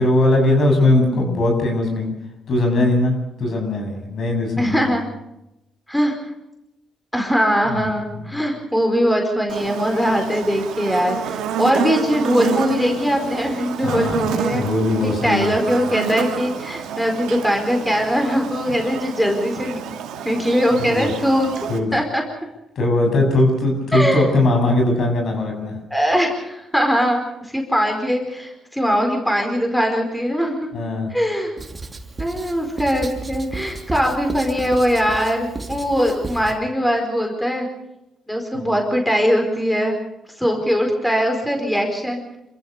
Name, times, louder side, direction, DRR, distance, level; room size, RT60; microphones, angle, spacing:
voice 1, 0.0-2.1 2.5-4.9 7.7-7.8 8.1-8.3 13.8-15.5 20.9-21.1 21.7-22.0 22.8-25.7 30.7-31.1 38.5-38.8, left 2 dB, 60° left, 3 dB, 7.7 m, -20 dB
voice 2, 4.6-5.0 5.9-6.2 7.1-14.6 15.0-19.8 20.2-22.2 23.9-24.3 25.9-30.7 31.1-31.6 32.2-37.7 38.3-40.0 40.4-42.2, equal, 5° left, 3 dB, 4.7 m, -21 dB
Buzz, 9.5-21.8, right 8 dB, 85° right, 2.3 m, -29 dB
Writing, 31.6-36.6, right 3 dB, 25° right, 2.6 m, -33 dB
27.5 x 15.0 x 6.7 m, 0.89 s
cardioid pair, 90°, 0 cm